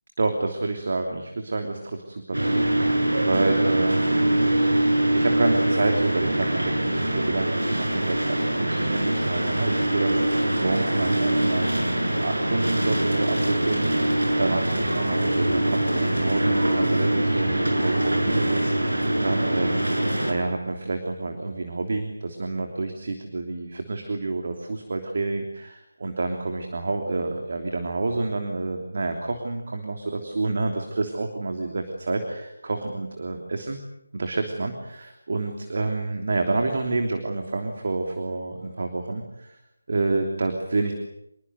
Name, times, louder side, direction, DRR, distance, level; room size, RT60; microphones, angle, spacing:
voice 1, 0.2-4.4 5.1-19.9 20.2-33.8 34.1-39.6 39.9-40.9, right 3 dB, 45° right, 4 dB, 3.2 m, -29 dB
sound 1, 2.3-20.3, right 1 dB, 75° right, 7.5 m, -23 dB
26.0 x 22.5 x 8.0 m, 0.82 s
figure-of-eight pair, 160°, 0 cm